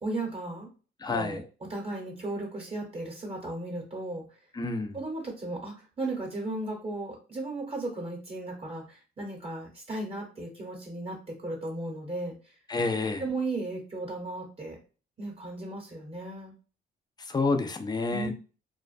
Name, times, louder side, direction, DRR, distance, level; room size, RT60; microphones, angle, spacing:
voice 1, 0.0-0.7 1.1-1.4 1.7-4.2 4.9-12.4 13.2-14.8 15.2-16.5 18.1-18.3, right 2 dB, 30° right, 0 dB, 0.9 m, -35 dB
voice 2, 1.0-1.4 4.5-4.9 12.7-13.2 17.2-18.3, left 3 dB, 20° left, 6 dB, 0.4 m, -29 dB
2.4 x 2.2 x 2.4 m, 0.35 s
cardioid pair, 90°, 20 cm